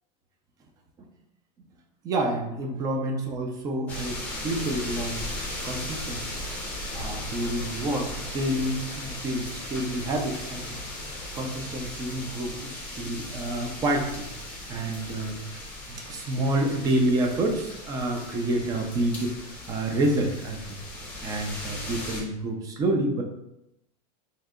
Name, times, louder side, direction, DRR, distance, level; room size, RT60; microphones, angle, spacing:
voice 1, 2.0-5.3 5.6-6.3 6.9-14.3 14.7-15.4 15.9-20.8 21.2-23.2, right 1 dB, 15° right, 2 dB, 0.4 m, -28 dB
sound 1, 3.9-22.2, left 1 dB, 5° left, 0.8 m, -37 dB
3.2 x 2.8 x 3.6 m, 0.88 s
supercardioid pair, 155°, 21 cm